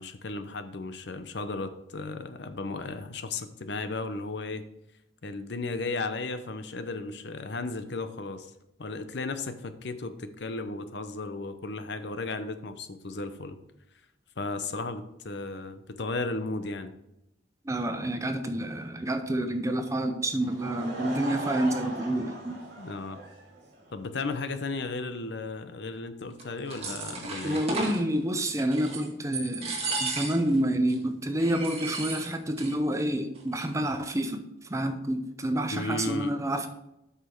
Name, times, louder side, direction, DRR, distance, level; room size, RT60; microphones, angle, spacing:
voice 1, 0.0-4.6 5.2-8.5 8.8-13.6 14.4-16.9 22.8-23.2 23.9-27.6 35.7-36.3, left 3 dB, 65° left, 10 dB, 0.7 m, -35 dB
voice 2, 17.7-22.6 27.4-34.4 34.7-36.7, right 1 dB, 15° right, 7 dB, 0.5 m, -28 dB
Laughter / Crowd, 20.4-23.9, right 2 dB, 60° right, 3.0 m, -38 dB
sound 1, 26.4-28.0 28.6-29.1 29.3-30.6 30.9-31.0 31.4-32.7 33.0-33.1 33.4-33.9, right 3 dB, 35° right, 1.7 m, -34 dB
8.1 x 6.0 x 4.5 m, 0.86 s
head